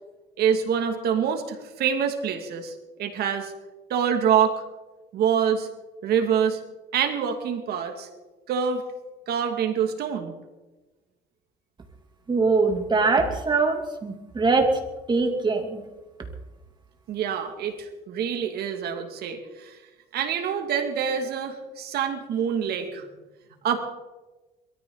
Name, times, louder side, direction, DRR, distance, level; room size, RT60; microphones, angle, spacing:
voice 1, 0.4-2.7 3.0-3.5 3.9-4.6 5.1-5.7 6.0-6.6 6.9-8.1 8.5-8.8 9.3-10.3 17.1-19.8 20.1-23.1 23.6-23.8, right 7 dB, 70° right, 5 dB, 2.4 m, -25 dB
voice 2, 12.3-14.7 15.1-15.8, right 4 dB, 25° right, 3 dB, 3.0 m, -22 dB
22.0 x 14.0 x 4.1 m, 1.1 s
cardioid pair, 110°, 17 cm